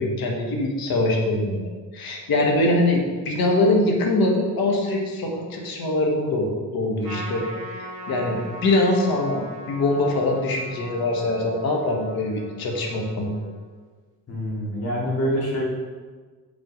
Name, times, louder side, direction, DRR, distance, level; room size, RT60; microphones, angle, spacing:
voice 1, 0.0-1.6 1.9-7.7 8.1-9.4 9.7-13.3, left 2 dB, 85° left, 0 dB, 1.6 m, -23 dB
Trumpet, 7.0-13.7, equal, 65° right, 1.9 m, -39 dB
voice 2, 14.3-15.6, equal, 45° left, -4 dB, 2.5 m, -25 dB
7.8 x 6.0 x 5.1 m, 1.4 s
cardioid pair, 125°, 35 cm